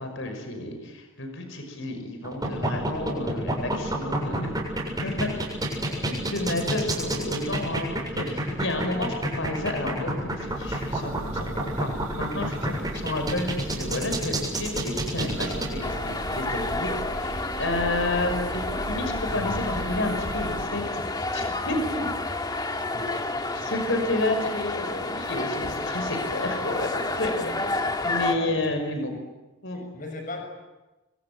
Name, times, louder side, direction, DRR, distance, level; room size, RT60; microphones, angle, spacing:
voice 1, 0.0-4.5 5.0-5.3 6.1-16.9 17.2-22.1 23.0-27.7 28.0-29.1 29.6-29.8, left 2 dB, 60° left, 5 dB, 5.9 m, -31 dB
sound 1, 2.2-15.7, right 1 dB, 20° right, 7.4 m, -28 dB
Church bell, 10.4-20.7, right 1 dB, 85° right, 2.2 m, -38 dB
sound 2, 15.8-28.3, left 2 dB, 20° left, 1.8 m, -30 dB
voice 2, 22.9-23.7 27.4-27.9 28.3-28.7 29.7-30.4, left 2 dB, 40° left, 4 dB, 6.4 m, -40 dB
27.5 x 24.0 x 8.8 m, 1.1 s
head